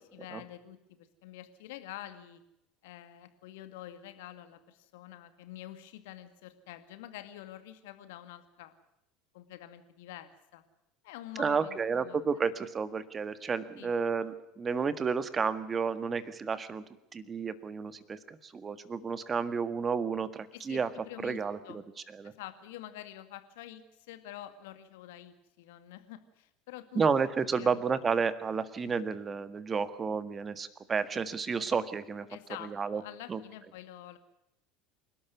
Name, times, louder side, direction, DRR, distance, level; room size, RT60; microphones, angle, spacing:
voice 1, 0.1-2.4 2.8-8.7 9.3-10.6 11.0-12.2 13.8-14.0 20.5-21.8 22.4-23.8 24.1-27.0 27.6-28.0 32.3-34.2, left 13 dB, 60° left, 10 dB, 2.1 m, -47 dB
voice 2, 11.4-16.8 17.1-20.9 21.2-21.8 22.1-22.3 26.9-32.3 32.6-33.0 33.3-33.4, right 5 dB, 25° right, 14 dB, 1.7 m, -31 dB
28.0 x 12.5 x 9.5 m, 0.83 s
figure-of-eight pair, 70°, 0 cm